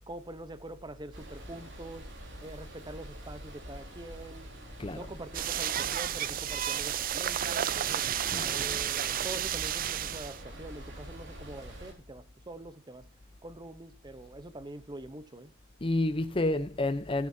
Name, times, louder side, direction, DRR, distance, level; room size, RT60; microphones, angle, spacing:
voice 1, 0.1-2.1 2.4-4.5 4.9-8.1 8.5-13.1 13.4-15.5, right 1 dB, 20° right, 0.9 m, -44 dB
sound 1, 1.1-11.9, equal, 60° right, 4.0 m, -46 dB
voice 2, 4.8-5.1 8.3-8.6 15.8-17.3, left 2 dB, 25° left, 0.7 m, -30 dB
sound 2, 5.3-10.4, right 10 dB, 45° right, 0.5 m, -31 dB
19.0 x 9.7 x 2.8 m
head